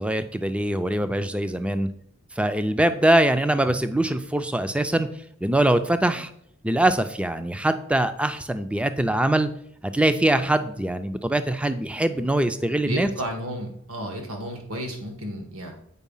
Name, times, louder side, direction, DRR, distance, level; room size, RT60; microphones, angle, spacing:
voice 1, 0.0-1.9 2.4-5.1 5.4-6.3 6.6-9.5 9.8-13.1, right 1 dB, 5° right, 10 dB, 0.4 m, -23 dB
voice 2, 12.7-15.7, right 1 dB, 75° right, 3 dB, 1.7 m, -33 dB
8.2 x 4.8 x 5.4 m, 0.71 s
head